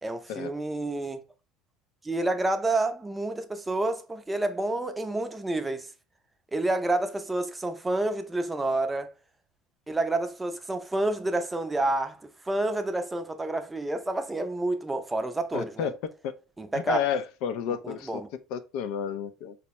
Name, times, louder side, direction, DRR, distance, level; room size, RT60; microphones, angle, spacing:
voice 1, 0.0-1.2 2.0-5.9 6.5-9.1 9.9-15.9 16.6-17.0 17.8-18.3, right 2 dB, 15° right, 0.5 m, -29 dB
voice 2, 15.5-16.0 16.2-16.3 16.7-18.2 18.5-19.6, left 8 dB, 70° left, 0.4 m, -31 dB
4.4 x 2.0 x 2.9 m
supercardioid pair, 95°, 0 cm